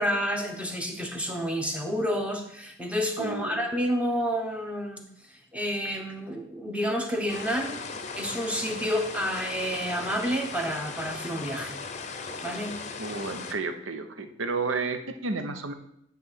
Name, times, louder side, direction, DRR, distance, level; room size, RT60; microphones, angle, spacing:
voice 1, 0.0-7.7 8.2-11.8 12.4-12.8, equal, 5° right, 3 dB, 0.9 m, -29 dB
voice 2, 3.2-3.7 13.0-15.7, right 4 dB, 75° right, 7 dB, 0.8 m, -32 dB
sound 1, 7.3-13.5, left 4 dB, 35° left, 0.7 m, -38 dB
9.5 x 3.3 x 6.3 m, 0.73 s
head